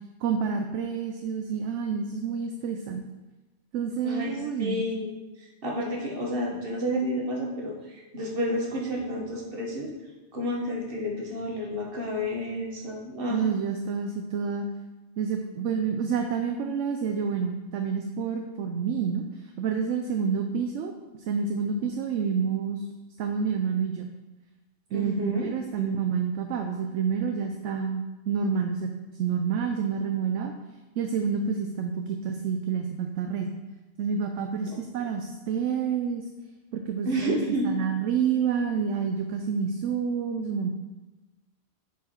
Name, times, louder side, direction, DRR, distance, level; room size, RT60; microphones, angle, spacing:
voice 1, 0.2-3.0 3.7-4.8 13.3-14.7 15.2-19.2 19.6-20.9 21.3-22.8 23.2-24.1 24.9-28.9 29.2-30.5 31.0-33.5 34.0-36.2 36.7-37.4 37.6-40.7, right 6 dB, 70° right, 5 dB, 0.9 m, -28 dB
voice 2, 4.0-4.3 4.6-9.9 10.3-13.5 24.9-25.5 34.7-34.8 37.0-37.7, equal, 45° right, -1 dB, 1.5 m, -30 dB
7.1 x 4.7 x 4.4 m, 1.1 s
omnidirectional pair, 1.3 m